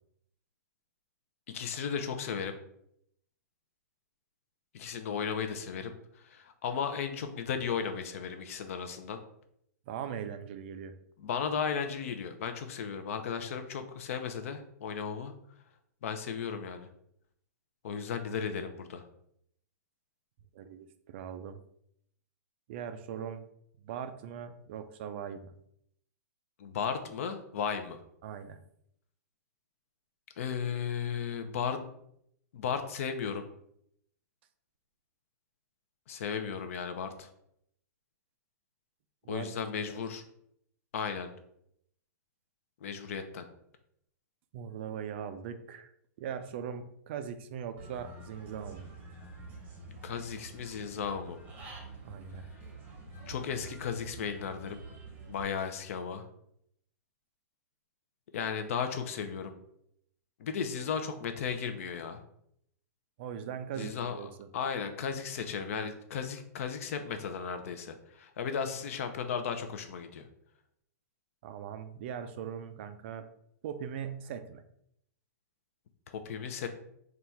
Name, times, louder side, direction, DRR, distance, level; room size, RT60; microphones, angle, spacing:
voice 1, 1.5-2.5 4.7-9.2 11.2-15.3 16.0-16.9 17.8-19.0 26.6-28.0 30.4-31.9 32.5-33.4 36.1-37.3 39.3-40.2 40.9-41.3 42.8-43.4 50.0-51.4 53.3-54.8 55.3-56.2 58.3-59.5 60.4-62.2 63.7-64.2 64.5-70.3 76.1-76.7, left 6 dB, 55° left, 8 dB, 0.6 m, -35 dB
voice 2, 9.9-10.9 20.5-21.6 22.7-23.4 23.8-25.5 28.2-28.6 39.2-39.5 39.9-40.0 44.5-45.9 46.2-48.9 52.0-52.4 63.2-64.5 71.4-73.2 73.6-74.6, right 8 dB, 40° right, 9 dB, 0.3 m, -40 dB
Human voice / Bird, 47.8-55.4, right 3 dB, 20° right, 0.8 m, -48 dB
3.9 x 2.3 x 4.3 m, 0.72 s
hypercardioid pair, 155°, 9 cm